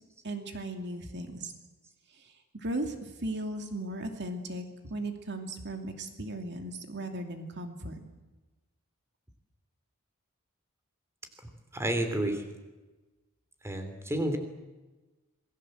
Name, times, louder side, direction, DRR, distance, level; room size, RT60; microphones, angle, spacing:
voice 1, 0.2-1.5 2.1-8.0, right 1 dB, 50° right, 5 dB, 2.5 m, -37 dB
voice 2, 11.7-12.4 13.6-14.4, right 1 dB, 10° right, 7 dB, 3.2 m, -30 dB
27.5 x 20.5 x 7.9 m, 1.2 s
head